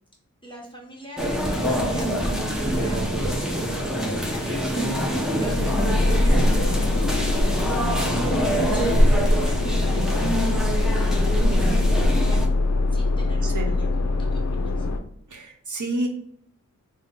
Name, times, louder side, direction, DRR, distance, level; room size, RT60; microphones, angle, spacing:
voice 1, 0.4-4.7 5.4-9.1 9.4-12.4 12.9-13.9 14.3-14.9, left 1 dB, 15° left, -3 dB, 1.1 m, -44 dB
sound 1, 1.2-12.5, equal, ahead, 0.6 m, -23 dB
sound 2, 5.4-15.0, left 3 dB, 55° left, 0.5 m, -24 dB
voice 2, 15.3-16.1, right 2 dB, 65° right, 3 dB, 0.8 m, -29 dB
3.7 x 2.1 x 3.6 m, 0.69 s
wide cardioid pair, 75°, 32 cm